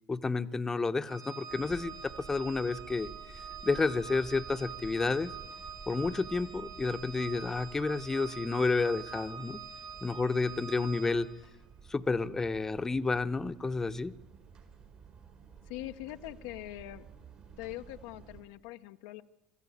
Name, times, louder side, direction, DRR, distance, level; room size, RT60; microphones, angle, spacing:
voice 1, 0.1-3.1 3.6-5.3 5.9-9.6 10.0-11.3 11.9-14.1, left 3 dB, 20° left, 10 dB, 0.9 m, -30 dB
Organ, 1.1-11.5, right 6 dB, 75° right, 3.6 m, -45 dB
sound 1, 1.5-18.4, right 7 dB, 50° right, 4.7 m, -53 dB
voice 2, 15.7-17.1 17.6-19.2, left 16 dB, 70° left, 7 dB, 0.7 m, -42 dB
24.5 x 14.0 x 8.6 m, 0.95 s
hypercardioid pair, 65°, 2 cm